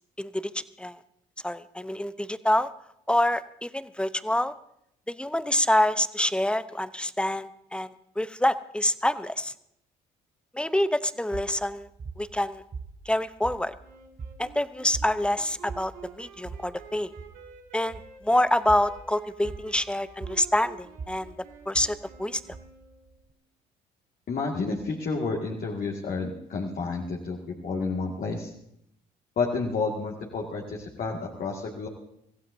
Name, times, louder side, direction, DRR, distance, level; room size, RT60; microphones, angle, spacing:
voice 1, 0.2-1.0 1.4-2.7 3.1-4.5 5.1-9.5 10.5-11.9 12.2-12.6 13.1-13.7 14.4-17.1 17.7-21.3 21.7-22.4, left 1 dB, 5° left, 14 dB, 0.7 m, -26 dB
Footsteps Wood Floor Slow Male Heavy, 11.3-23.3, right 4 dB, 35° right, 1.1 m, -43 dB
Wind instrument woodwind instrument, 13.8-23.3, right 7 dB, 85° right, 6.3 m, -49 dB
voice 2, 24.3-28.5 29.4-31.9, left 4 dB, 50° left, -1 dB, 2.0 m, -30 dB
24.0 x 15.5 x 2.7 m, 0.75 s
hypercardioid pair, 60°, 19 cm